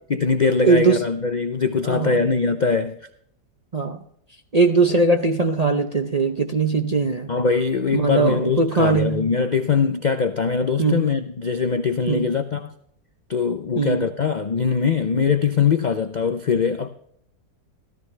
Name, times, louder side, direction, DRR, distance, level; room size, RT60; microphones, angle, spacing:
voice 1, 0.1-3.0 7.3-12.7 13.3-16.9, left 5 dB, 65° left, 0.4 m, -22 dB
voice 2, 0.6-1.0 1.8-2.2 3.7-4.0 4.5-7.3 7.9-9.2 10.8-11.1 12.1-12.3 13.7-14.1, right 3 dB, 40° right, 0.6 m, -20 dB
14.5 x 13.5 x 3.3 m
omnidirectional pair, 1.7 m